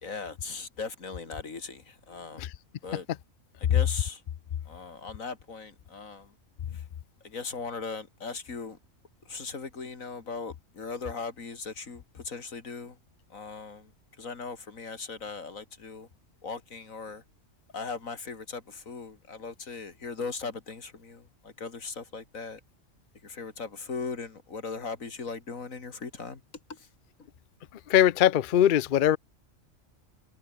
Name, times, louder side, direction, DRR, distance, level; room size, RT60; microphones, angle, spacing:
voice 1, 0.0-2.5 2.8-3.1 3.6-4.2 4.7-6.3 6.7-6.8 7.2-8.8 9.2-13.0 13.3-13.9 14.2-16.1 16.4-17.2 17.7-22.6 23.2-26.4 26.7-26.9 27.2-27.3, left 4 dB, 90° left, 2.9 m, -38 dB
voice 2, 27.9-29.2, left 11 dB, 55° left, 0.6 m, -21 dB
omnidirectional pair, 1.4 m